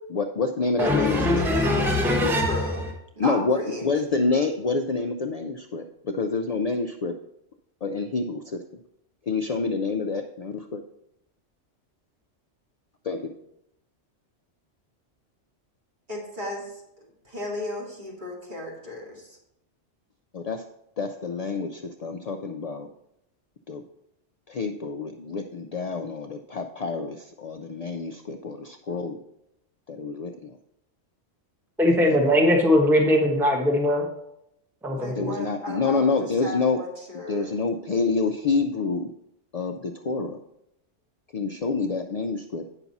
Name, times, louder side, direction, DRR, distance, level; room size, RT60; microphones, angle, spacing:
voice 1, 0.1-1.4 3.2-7.1 7.8-8.6 9.3-10.8 13.0-13.3 20.3-20.6 21.0-22.9 23.7-23.8 24.5-29.2 29.9-30.6 31.9-32.2 35.1-36.8 37.3-39.1 39.5-40.4 41.3-42.7, left 4 dB, 70° left, 5 dB, 0.3 m, -27 dB
voice 2, 0.8-2.6 31.8-34.1 34.8-35.3, left 1 dB, ahead, 1 dB, 1.0 m, -21 dB
voice 3, 1.4-2.9 3.2-3.9 16.1-19.4 34.9-37.6, left 1 dB, 40° right, -3 dB, 2.2 m, -35 dB
8.9 x 5.9 x 4.1 m, 0.81 s
omnidirectional pair, 1.2 m